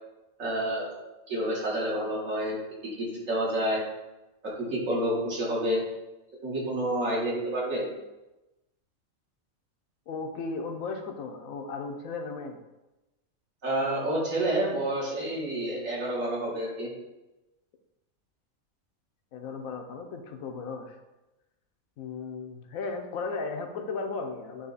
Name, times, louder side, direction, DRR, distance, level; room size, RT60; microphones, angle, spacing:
voice 1, 0.4-0.9 1.3-2.6 2.8-3.8 4.6-5.8 6.4-7.9 13.6-16.9, right 1 dB, 70° right, -5 dB, 2.0 m, -29 dB
voice 2, 10.1-12.6 19.3-21.0 22.0-24.7, left 4 dB, 80° left, 4 dB, 1.2 m, -35 dB
8.1 x 3.1 x 3.9 m, 1.0 s
omnidirectional pair, 1.4 m